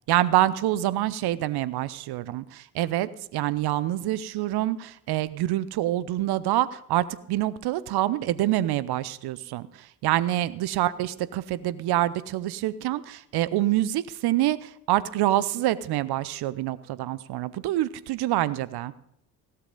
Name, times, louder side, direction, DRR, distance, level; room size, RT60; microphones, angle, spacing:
voice 1, 0.1-9.7 10.0-18.9, right 14 dB, 50° right, 18 dB, 0.8 m, -26 dB
16.0 x 12.5 x 3.9 m, 0.74 s
figure-of-eight pair, 50°, 49 cm